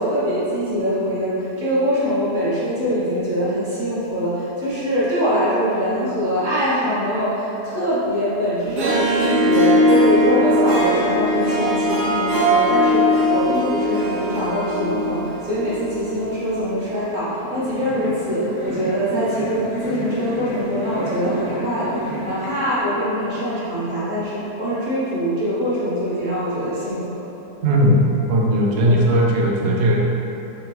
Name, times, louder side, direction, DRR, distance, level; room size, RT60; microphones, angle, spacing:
voice 1, 0.0-27.2, equal, 35° right, -10 dB, 1.0 m, -23 dB
Harp, 8.6-16.1, equal, 85° right, 1.3 m, -19 dB
sound 1, 17.3-22.5, right 1 dB, 70° left, 1.3 m, -31 dB
voice 2, 27.6-28.0 28.3-30.0, equal, 65° right, -2 dB, 0.7 m, -17 dB
3.7 x 3.4 x 3.1 m, 3.0 s
omnidirectional pair, 1.7 m